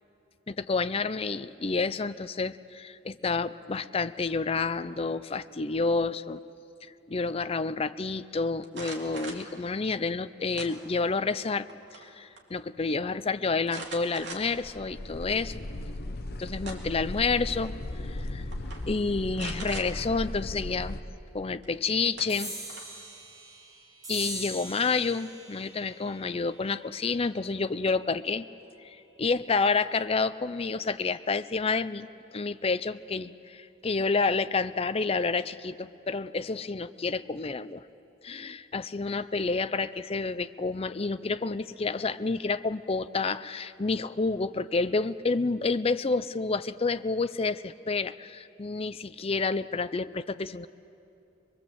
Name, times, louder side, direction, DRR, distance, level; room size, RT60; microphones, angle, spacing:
voice 1, 0.5-6.4 7.1-11.7 12.0-15.6 16.4-17.7 18.0-18.4 18.8-21.0 21.3-22.6 24.1-28.4 28.8-32.1 32.3-37.8 38.2-50.7, left 4 dB, 30° left, 13 dB, 0.5 m, -29 dB
sound 1, 8.6-9.5 10.6-11.2 11.6-12.1 12.4-12.5 13.7-14.7 15.2-15.3 16.3-17.1 18.0-18.2 18.5-18.8 19.3-19.9 21.6-21.7 22.2-23.0, right 3 dB, 60° right, 2.9 m, -41 dB
sound 2, 14.4-21.0, left 1 dB, 50° left, 0.9 m, -37 dB
sound 3, 22.3-29.1, right 2 dB, 20° right, 3.3 m, -43 dB
23.5 x 22.5 x 7.9 m, 2.8 s
head